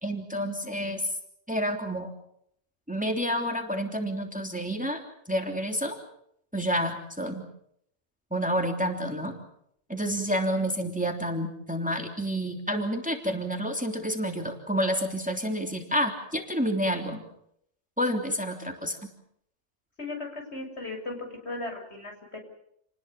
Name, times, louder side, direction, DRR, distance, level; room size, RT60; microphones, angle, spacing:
voice 1, 0.0-1.0 1.5-2.1 2.9-5.0 5.3-6.0 6.5-7.4 8.3-9.4 9.9-17.2 18.0-19.0, equal, 5° right, 4 dB, 3.2 m, -29 dB
voice 2, 20.0-21.2 21.4-22.4, left 2 dB, 70° left, 2 dB, 7.4 m, -36 dB
29.5 x 20.0 x 7.1 m, 0.72 s
omnidirectional pair, 1.2 m